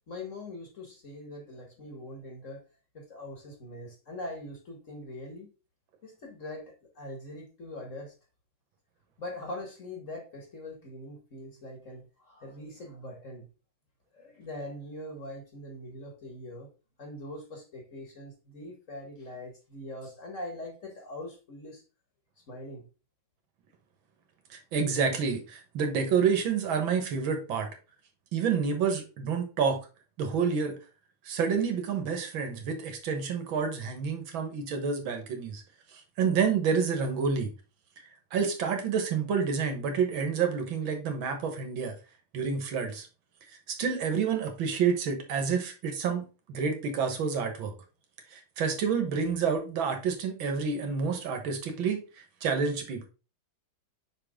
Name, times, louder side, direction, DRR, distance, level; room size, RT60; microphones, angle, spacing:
voice 1, 0.1-2.6 2.9-5.5 6.0-8.1 9.2-13.5 14.1-16.7 17.0-21.8 22.5-22.9, left 1 dB, 40° left, 2 dB, 1.7 m, -42 dB
voice 2, 24.5-27.7 28.3-29.8 30.2-30.8 31.3-35.6 36.2-37.5 38.3-41.9 42.3-43.1 43.7-47.7 48.3-52.0 52.4-53.1, right 6 dB, 75° right, 5 dB, 2.0 m, -28 dB
5.8 x 5.1 x 3.6 m, 0.32 s
omnidirectional pair, 2.2 m